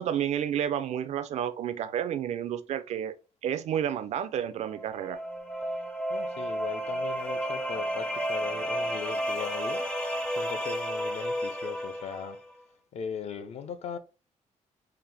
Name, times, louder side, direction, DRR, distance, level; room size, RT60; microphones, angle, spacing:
voice 1, 0.0-3.2 3.4-5.2, right 9 dB, 65° right, 0.4 m, -30 dB
sound 1, 4.6-12.4, equal, 5° left, 0.4 m, -32 dB
voice 2, 6.1-12.4 12.9-14.0, left 7 dB, 55° left, 0.5 m, -39 dB
3.9 x 2.5 x 3.3 m
wide cardioid pair, 175°, 13 cm